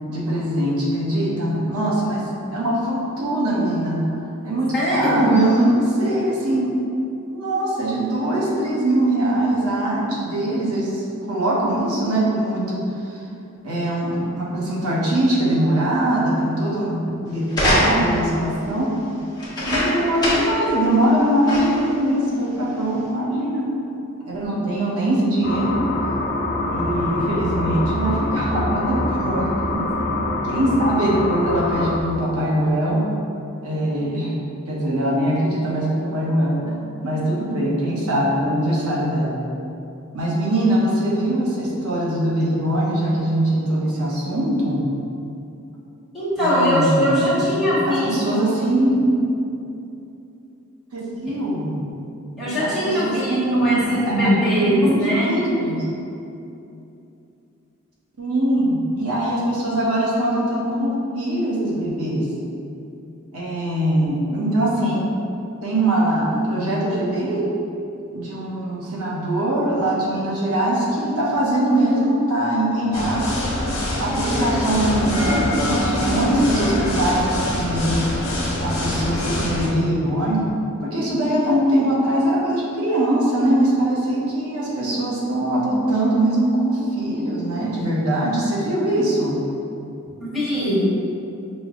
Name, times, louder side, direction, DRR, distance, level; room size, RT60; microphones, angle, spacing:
voice 1, 0.1-4.1 4.4-6.7 7.3-13.3 13.6-18.9 19.6-23.7 24.2-25.8 26.7-29.9 30.4-33.0 33.6-34.3 34.7-36.8 37.0-39.4 40.1-44.9 46.4-47.5 47.9-49.2 50.9-51.9 52.6-55.0 55.2-55.9 58.2-62.3 63.3-65.1 65.6-67.5 68.1-73.3 74.0-78.1 78.6-80.5 80.8-89.4, right 1 dB, 90° right, -5 dB, 0.9 m, -22 dB
voice 2, 4.7-5.3 46.1-48.5 52.4-55.4 90.2-90.9, equal, ahead, -12 dB, 1.3 m, -21 dB
sound 1, 17.5-18.3 19.4-20.6 21.0-21.1 21.5-21.9 22.7-22.8, equal, 20° left, 0.9 m, -22 dB
sound 2, 25.4-32.0, left 2 dB, 40° left, 0.4 m, -25 dB
sound 3, 72.9-79.7, left 1 dB, 70° left, 0.9 m, -24 dB
5.2 x 2.1 x 3.6 m, 2.7 s
head